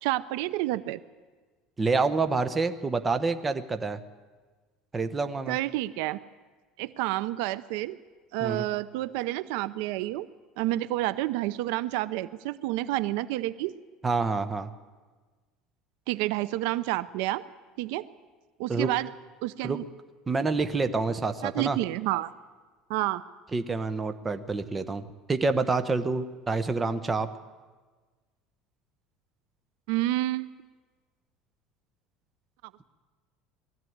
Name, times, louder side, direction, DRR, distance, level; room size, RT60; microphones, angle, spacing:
voice 1, 0.0-1.0 5.5-6.2 6.8-8.0 8.3-10.3 10.6-13.7 16.1-17.4 17.8-18.1 18.6-19.1 19.4-19.8 21.4-22.3 22.9-23.2 29.9-30.5, right 16 dB, 75° right, 16 dB, 0.6 m, -29 dB
voice 2, 1.8-4.0 4.9-5.6 8.4-8.7 14.0-14.7 18.7-18.9 19.6-19.8 20.3-21.8 23.5-27.3, right 3 dB, 15° right, 9 dB, 0.9 m, -27 dB
20.0 x 14.0 x 9.4 m, 1.4 s
cardioid pair, 150°, 0 cm